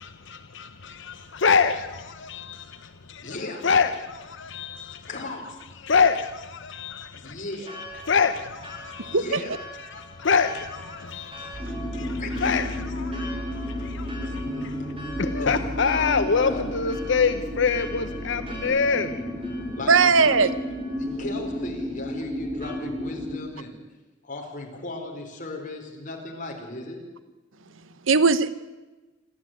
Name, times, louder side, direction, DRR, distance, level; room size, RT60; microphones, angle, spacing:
voice 1, 0.0-3.4 3.6-5.1 5.8-7.4 8.0-9.3 9.8-19.8, left 5 dB, 65° left, 10 dB, 0.9 m, -26 dB
voice 2, 3.2-3.7 5.1-5.6 7.1-7.8 9.0-9.6 12.2-12.6 15.0-15.1 15.4-15.5 16.0-16.1 16.4-16.6 19.8-20.5 21.0-23.8 24.2-27.0 27.6-28.0, left 2 dB, 45° left, 1 dB, 4.8 m, -36 dB
Church bell, 7.6-22.8, equal, 30° right, 5.4 m, -44 dB
sound 1, 11.5-18.6, equal, 45° right, 4.6 m, -37 dB
sound 2, 11.6-23.4, equal, 10° right, 3.9 m, -33 dB
voice 3, 19.9-20.5 28.1-28.5, right 4 dB, 85° right, 14 dB, 1.1 m, -18 dB
27.0 x 13.5 x 9.3 m, 1.2 s
head